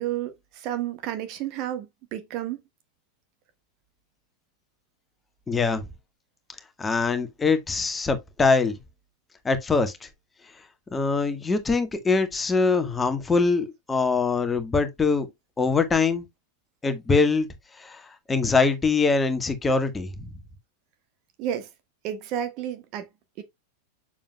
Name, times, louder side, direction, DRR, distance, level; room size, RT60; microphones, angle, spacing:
voice 1, 0.0-2.6 21.4-21.7 22.0-23.1 23.4-23.5, right 11 dB, 40° right, 1.4 m, -31 dB
voice 2, 5.5-5.8 6.8-8.7 9.4-10.1 10.9-15.3 15.6-16.2 16.8-17.5 17.8-18.0 18.3-20.1, left 4 dB, 15° left, 1.4 m, -23 dB
7.3 x 7.0 x 2.2 m
figure-of-eight pair, 90°, 0 cm